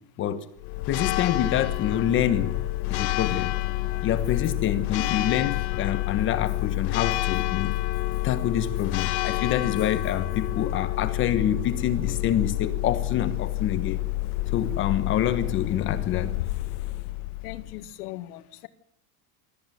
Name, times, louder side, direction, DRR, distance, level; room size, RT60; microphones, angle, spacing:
Church bell, 0.6-17.8, left 18 dB, 55° left, 1.5 m, -28 dB
voice 1, 0.9-2.6 2.9-3.6 4.0-7.7 8.2-14.0 14.5-16.3, left 10 dB, 25° left, 1.2 m, -26 dB
voice 2, 17.4-18.7, left 15 dB, 80° left, 1.9 m, -39 dB
24.0 x 14.0 x 9.3 m
supercardioid pair, 175°, 45 cm